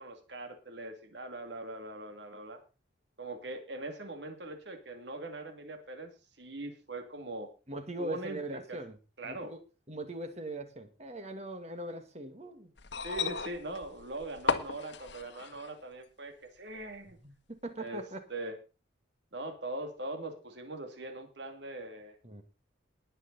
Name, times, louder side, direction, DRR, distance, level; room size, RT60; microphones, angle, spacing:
voice 1, 0.0-2.6 3.2-6.1 6.4-7.5 8.0-8.8 9.2-9.5 13.0-17.2 17.8-18.0 18.3-18.6 19.3-22.2, right 2 dB, 60° right, 2.5 m, -41 dB
voice 2, 7.7-9.0 9.2-9.6 9.9-12.7 17.2-18.2 22.2-22.4, right 1 dB, 35° right, 1.8 m, -41 dB
sound 1, 12.8-15.8 16.8-16.9, left 5 dB, 60° left, 1.4 m, -35 dB
19.5 x 8.1 x 4.1 m
head